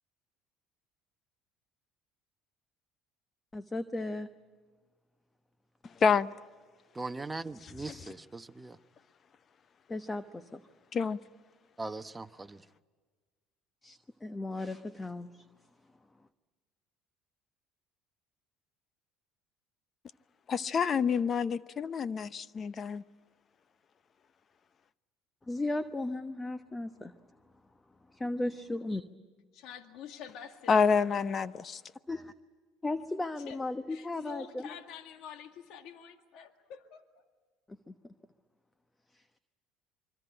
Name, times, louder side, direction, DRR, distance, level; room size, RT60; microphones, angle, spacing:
voice 1, 3.5-4.3 9.9-10.6 13.8-15.5 25.5-27.1 28.1-29.0 32.1-32.3 32.8-34.7 37.7-38.1 39.1-39.2, left 2 dB, 15° left, 1.1 m, -36 dB
voice 2, 6.9-8.8 11.8-12.6, right 3 dB, 15° right, 1.1 m, -40 dB
voice 3, 20.5-23.0 30.7-31.8, left 6 dB, 40° left, 0.8 m, -28 dB
voice 4, 29.5-31.6 33.4-33.6 33.9-37.0, left 7 dB, 65° left, 2.0 m, -48 dB
25.5 x 24.0 x 9.0 m
supercardioid pair, 90°, 0 cm